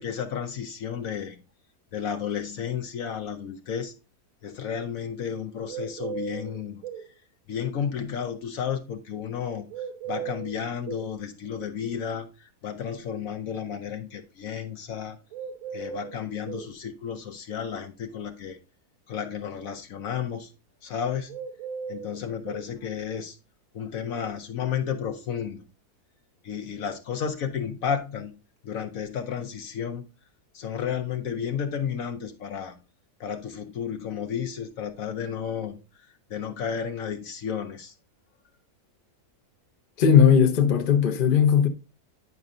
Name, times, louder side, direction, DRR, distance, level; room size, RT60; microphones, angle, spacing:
voice 1, 0.0-1.4 1.9-3.9 4.4-6.8 7.5-9.7 10.1-15.2 15.7-18.6 19.1-20.5 20.8-21.4 21.9-23.4 23.7-25.6 26.4-28.3 28.6-30.1 30.5-32.8 33.2-35.8 36.3-37.9, left 8 dB, 65° left, 1.1 m, -32 dB
sound 1, 5.7-7.1 9.7-11.1 15.3-16.7 21.3-22.7, right 7 dB, 65° right, 0.9 m, -36 dB
voice 2, 40.0-41.7, left 7 dB, 40° left, 0.8 m, -18 dB
9.6 x 5.3 x 2.5 m
omnidirectional pair, 1.7 m